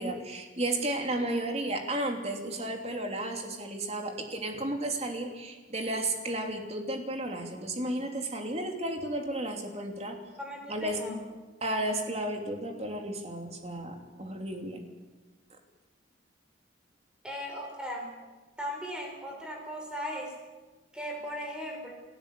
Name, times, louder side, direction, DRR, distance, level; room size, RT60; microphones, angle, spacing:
voice 1, 0.0-10.2 10.7-11.0 11.6-14.8, right 1 dB, 35° right, 3 dB, 3.0 m, -33 dB
voice 2, 10.4-11.2 17.2-18.1 18.6-20.3 20.9-21.9, equal, 5° right, 1 dB, 5.2 m, -37 dB
29.0 x 15.0 x 8.4 m, 1.3 s
head